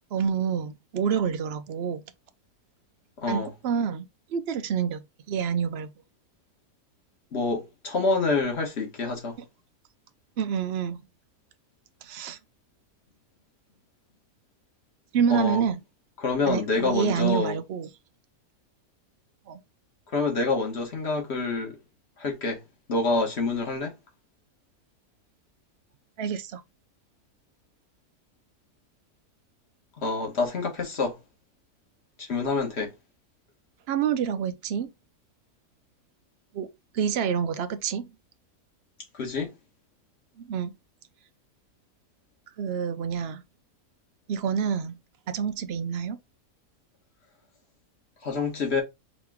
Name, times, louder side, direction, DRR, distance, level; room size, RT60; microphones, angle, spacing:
voice 1, 0.1-2.0 3.3-5.0 5.3-5.9 10.4-11.0 12.0-12.4 15.1-15.8 16.5-17.9 19.5-19.6 26.2-26.6 33.9-34.9 36.5-36.7 36.9-38.1 40.4-40.7 42.6-43.4 44.3-45.0 45.3-46.2, right 7 dB, 60° right, 0.7 m, -27 dB
voice 2, 3.2-3.5 7.3-9.4 15.3-15.6 16.2-17.6 20.1-21.8 22.2-22.6 22.9-23.9 30.0-31.2 32.2-32.9 39.1-39.5 48.2-48.8, left 3 dB, 45° left, 1.6 m, -27 dB
5.0 x 3.0 x 3.6 m
omnidirectional pair, 1.6 m